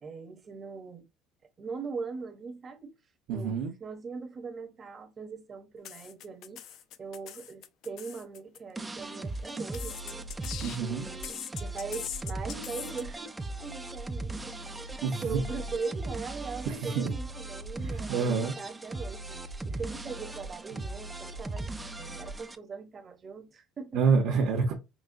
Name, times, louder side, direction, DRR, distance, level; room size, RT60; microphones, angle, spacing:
voice 1, 0.0-1.1 1.6-3.0 3.3-3.5 3.8-6.6 7.0-10.3 10.8-13.4 13.6-14.9 15.2-19.4 19.6-24.1, right 5 dB, 25° right, 0.7 m, -40 dB
voice 2, 3.3-3.7 10.6-11.1 15.0-15.4 16.7-17.1 17.8-18.6 19.7-19.8 23.9-24.7, right 5 dB, 65° right, 0.9 m, -28 dB
sound 1, 5.8-8.6 9.5-10.9 11.2-13.0, left 10 dB, 55° left, 0.4 m, -41 dB
sound 2, 8.8-22.6, right 2 dB, 10° right, 0.3 m, -38 dB
5.0 x 2.2 x 2.6 m
cardioid pair, 155°, 0 cm